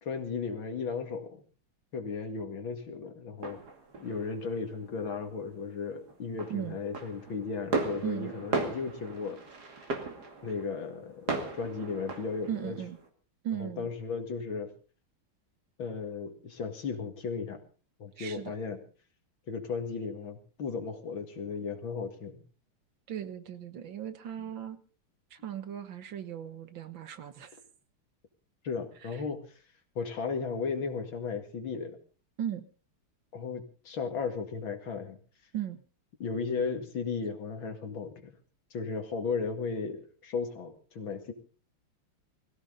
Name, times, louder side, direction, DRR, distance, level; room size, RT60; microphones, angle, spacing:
voice 1, 0.0-1.4 1.9-3.6 4.0-9.4 10.4-12.8 13.6-14.7 15.8-17.6 18.0-18.8 19.5-22.4 28.6-29.4 30.0-32.0 33.3-35.2 36.2-38.3 38.7-41.3, left 5 dB, 65° left, 6 dB, 2.8 m, -35 dB
sound 1, 3.4-4.7 5.1-5.7 5.9-13.1, right 3 dB, 45° right, 2.9 m, -37 dB
voice 2, 8.0-8.3 12.5-13.0 13.4-13.9 18.2-18.5 23.1-24.8 25.3-27.6 29.0-29.2 32.4-32.7 35.5-35.8, right 10 dB, 65° right, 11 dB, 1.9 m, -37 dB
21.5 x 16.0 x 3.8 m, 0.37 s
omnidirectional pair, 2.4 m